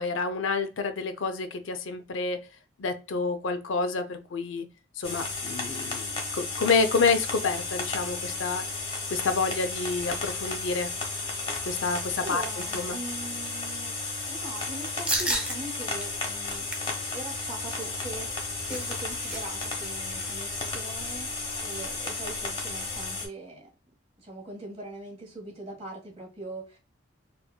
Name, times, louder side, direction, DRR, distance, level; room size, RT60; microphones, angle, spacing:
voice 1, 0.0-2.4 2.8-4.7 5.0-8.7 9.1-10.9 11.6-12.4 12.7-13.0, left 4 dB, 80° left, 0.5 m, -28 dB
sound 1, 5.0-23.3, left 3 dB, 25° left, 0.8 m, -33 dB
voice 2, 12.2-16.7 17.1-23.7 24.2-26.8, right 2 dB, 30° right, 1.7 m, -41 dB
sound 2, 15.1-15.6 16.0-16.1 16.5-16.9 18.2-19.4 19.7-19.8 20.1-20.4, right 1 dB, 5° right, 0.6 m, -31 dB
4.3 x 2.5 x 2.2 m
head